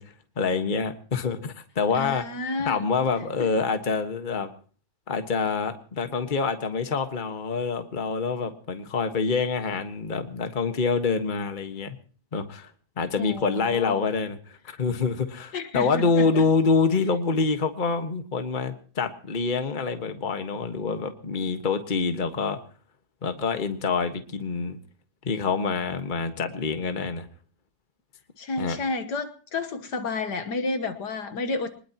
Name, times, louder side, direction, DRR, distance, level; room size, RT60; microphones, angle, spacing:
voice 1, 0.0-2.2 2.6-4.5 5.1-12.0 12.3-12.7 13.0-22.6 23.2-24.8 25.2-27.3 28.6-28.8, left 4 dB, 30° left, 7 dB, 1.5 m, -26 dB
voice 2, 1.9-2.9 3.4-3.5 13.2-14.0 15.5-16.4 28.4-31.8, left 3 dB, 65° left, 10 dB, 1.8 m, -31 dB
23.5 x 20.5 x 3.0 m, 0.40 s
omnidirectional pair, 2.0 m